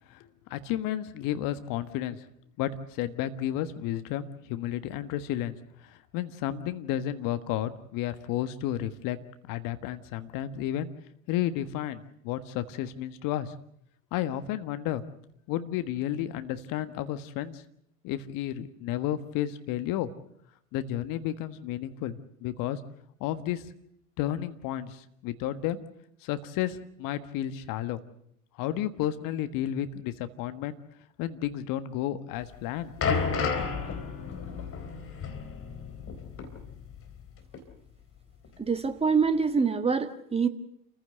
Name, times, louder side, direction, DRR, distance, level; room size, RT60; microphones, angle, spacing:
voice 1, 0.1-2.2 2.6-9.2 9.5-10.9 11.3-13.5 14.1-15.0 15.5-17.6 18.0-20.1 20.7-22.8 23.2-23.7 24.2-25.8 26.2-28.0 28.6-30.8 31.2-32.9, left 12 dB, 45° left, 11 dB, 1.5 m, -32 dB
sound 1, 32.4-37.3 37.5-37.7 38.4-38.5, left 5 dB, 30° left, 4.0 m, -32 dB
voice 2, 38.6-40.5, right 5 dB, 15° right, 10 dB, 1.6 m, -25 dB
28.5 x 15.5 x 7.8 m, 0.73 s
hypercardioid pair, 90°, 46 cm